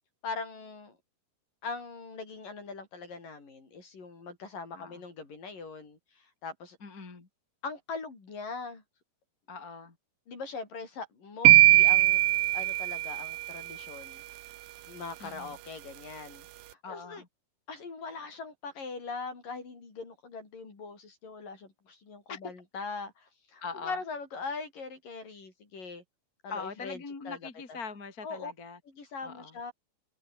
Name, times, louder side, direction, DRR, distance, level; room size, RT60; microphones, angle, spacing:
voice 1, 0.2-1.0 1.6-6.8 7.6-8.8 10.3-12.2 12.5-14.2 14.9-16.5 16.9-17.2 17.7-26.0 26.4-27.4 28.2-28.5 28.9-29.7, left 4 dB, 50° left, 7.6 m, -41 dB
voice 2, 4.7-5.0 6.8-7.3 9.5-9.9 15.2-15.6 16.8-17.3 22.3-22.5 23.6-24.0 26.5-28.8 29.2-29.6, left 4 dB, 25° left, 3.1 m, -42 dB
sound 1, 11.5-13.6, right 16 dB, 75° right, 2.3 m, -20 dB
open air
omnidirectional pair, 4.9 m